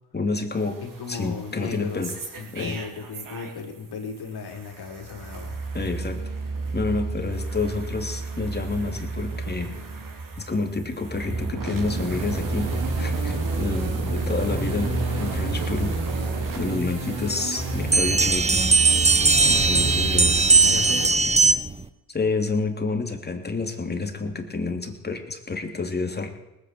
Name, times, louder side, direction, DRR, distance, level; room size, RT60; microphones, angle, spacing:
voice 1, 0.1-0.8 1.1-2.1 2.5-2.8 5.7-6.2 6.7-9.7 10.4-16.0 16.5-18.6 19.5-20.5 22.1-26.3, left 3 dB, 20° left, 4 dB, 2.8 m, -29 dB
sound 1, 0.6-3.8 4.1-20.4, right 3 dB, 45° right, 3.4 m, -31 dB
voice 2, 0.8-2.1 2.4-5.6 20.7-21.5, left 4 dB, 55° left, 2 dB, 3.7 m, -35 dB
sound 2, 11.7-21.1, right 2 dB, 75° right, 5.5 m, -33 dB
sound 3, 17.9-21.8, right 4 dB, 15° right, 1.0 m, -19 dB
19.0 x 8.9 x 7.9 m, 0.97 s
supercardioid pair, 75°, 46 cm